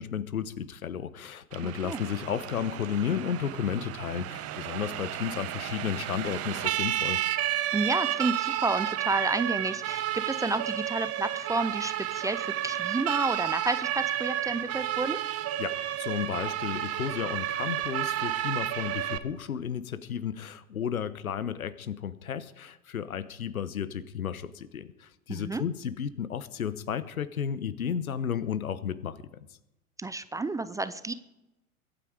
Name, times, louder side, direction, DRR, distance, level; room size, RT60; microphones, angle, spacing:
voice 1, 0.0-7.2 15.6-29.3, left 8 dB, 80° left, 16 dB, 1.1 m, -33 dB
Siren, 1.5-19.2, right 12 dB, 35° right, 1.2 m, -31 dB
voice 2, 1.6-2.0 7.7-15.2 25.3-25.6 30.0-31.1, right 2 dB, 10° right, 14 dB, 0.5 m, -31 dB
22.5 x 9.0 x 5.0 m, 0.92 s
figure-of-eight pair, 85°, 42 cm